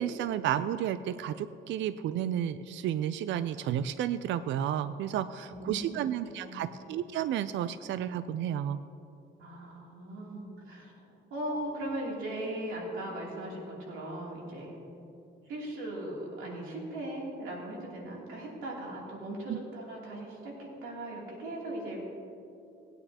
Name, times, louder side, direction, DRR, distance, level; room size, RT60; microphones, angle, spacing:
voice 1, 0.0-8.8 19.5-19.6, right 10 dB, 70° right, 13 dB, 0.4 m, -32 dB
voice 2, 5.5-6.0 6.3-6.7 9.4-10.9 11.3-14.7 15.4-22.0, right 1 dB, 85° right, -3 dB, 2.9 m, -38 dB
19.0 x 9.1 x 2.8 m, 2.7 s
cardioid pair, 90°, 20 cm